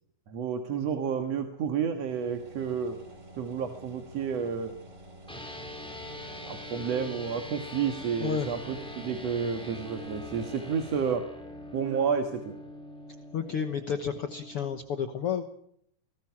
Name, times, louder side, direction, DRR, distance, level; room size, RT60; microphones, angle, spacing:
voice 1, 0.3-3.0 3.4-4.8 6.4-11.3 11.7-12.6, right 6 dB, 55° right, 5 dB, 2.5 m, -30 dB
sound 1, 2.1-11.2, right 1 dB, 25° right, 2.4 m, -49 dB
sound 2, 5.3-14.7, left 1 dB, ahead, 4.3 m, -43 dB
voice 2, 13.3-15.4, left 7 dB, 60° left, 9 dB, 1.6 m, -31 dB
26.0 x 19.0 x 6.0 m, 0.70 s
omnidirectional pair, 3.8 m